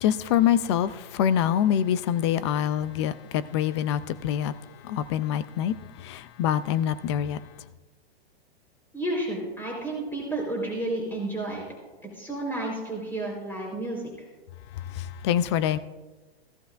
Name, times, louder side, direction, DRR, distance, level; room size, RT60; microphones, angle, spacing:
voice 1, 0.0-4.5 4.9-5.7 6.0-7.4 15.2-15.8, left 10 dB, 25° left, 0.3 m, -25 dB
voice 2, 8.9-11.6 12.0-14.0, right 2 dB, 5° left, 4.0 m, -31 dB
16.0 x 14.0 x 2.5 m
hypercardioid pair, 145°, 32 cm